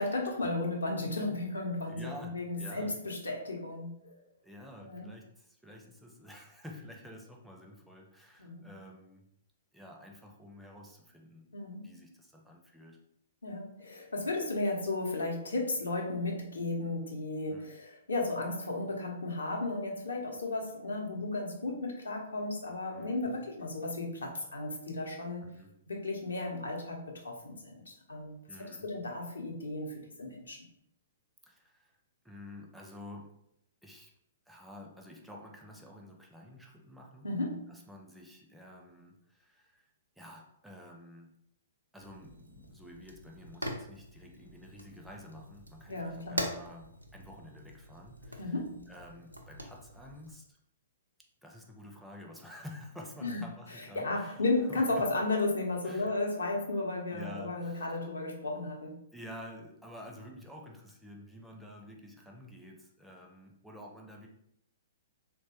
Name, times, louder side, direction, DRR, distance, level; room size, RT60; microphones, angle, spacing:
voice 1, 0.0-4.2 4.8-5.1 8.4-8.7 11.5-12.0 13.4-25.5 25.9-30.6 37.2-37.8 45.9-46.6 48.4-48.9 53.2-53.4 53.7-59.0, left 2 dB, 75° left, 0 dB, 0.6 m, -34 dB
voice 2, 1.9-2.9 4.4-9.3 9.7-13.0 17.5-17.8 22.9-23.4 25.4-25.7 28.5-28.9 31.4-32.0 32.2-33.4 33.8-34.1 34.5-37.3 37.7-41.4 41.9-48.6 48.9-50.6 51.4-54.4 54.7-55.1 55.8-56.1 57.1-57.9 59.1-64.3, left 1 dB, 5° right, 0 dB, 0.4 m, -50 dB
Fire, 42.0-50.3, equal, 90° right, 0.4 m, -43 dB
3.0 x 2.2 x 2.8 m, 0.75 s
figure-of-eight pair, 115°, 0 cm